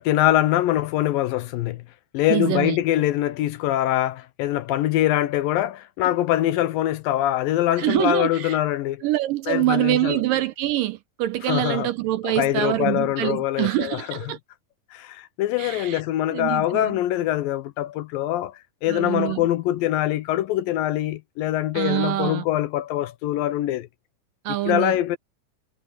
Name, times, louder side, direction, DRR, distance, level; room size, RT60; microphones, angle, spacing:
voice 1, 0.0-1.8 2.1-9.0 9.5-10.2 11.4-11.9 12.2-14.4 14.9-23.9 24.7-25.2, left 13 dB, 75° left, 2.4 m, -23 dB
voice 2, 2.3-2.8 7.8-8.6 9.0-14.4 15.6-16.0 16.3-17.0 18.9-19.4 21.7-22.4 24.5-25.0, right 15 dB, 75° right, 2.2 m, -25 dB
omnidirectional pair, 4.3 m